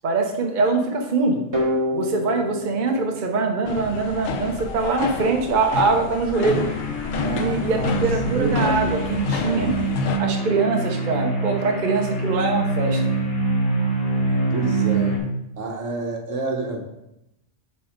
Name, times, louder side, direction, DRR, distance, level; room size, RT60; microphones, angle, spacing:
voice 1, 0.0-1.4 1.9-6.7 7.3-9.8 10.2-13.0, right 4 dB, 40° right, 3 dB, 0.9 m, -23 dB
sound 1, 1.5-4.3, left 1 dB, 20° right, 1.5 m, -28 dB
sound 2, 3.7-10.2, left 5 dB, 85° left, 1.1 m, -29 dB
sound 3, 6.4-15.2, right 2 dB, 40° left, 1.4 m, -25 dB
voice 2, 7.2-8.1 8.3-8.8 9.3-9.7 14.5-15.2 15.6-16.8, right 3 dB, 70° right, 2 dB, 1.3 m, -29 dB
7.5 x 4.4 x 5.1 m, 0.87 s
omnidirectional pair, 1.3 m